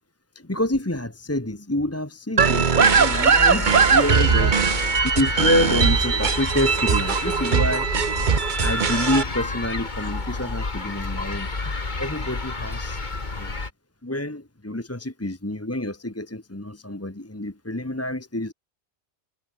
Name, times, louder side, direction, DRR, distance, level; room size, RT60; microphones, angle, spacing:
voice 1, 0.3-4.5 5.0-8.2 8.6-13.0 13.4-13.5 14.0-18.5, left 1 dB, 15° left, 1.3 m, -28 dB
sound 1, 2.4-9.2, right 6 dB, 45° right, 1.2 m, -20 dB
sound 2, 2.8-13.7, left 3 dB, 45° left, 2.2 m, -30 dB
omnidirectional pair, 1.1 m